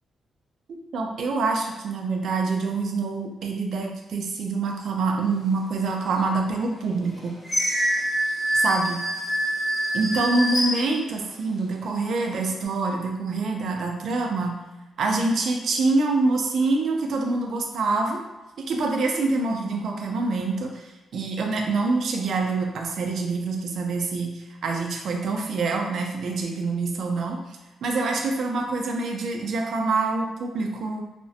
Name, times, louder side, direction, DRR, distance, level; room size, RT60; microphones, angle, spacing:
voice 1, 0.9-7.4 8.5-9.0 9.9-14.6 15.0-18.2 18.6-27.4 27.8-31.0, right 3 dB, 65° right, 2 dB, 0.4 m, -26 dB
sound 1, 6.1-6.2 6.8-11.5 12.0-12.6, right 1 dB, 30° left, 1.0 m, -26 dB
2.5 x 2.0 x 2.6 m, 1.1 s
cardioid pair, 125°, 0 cm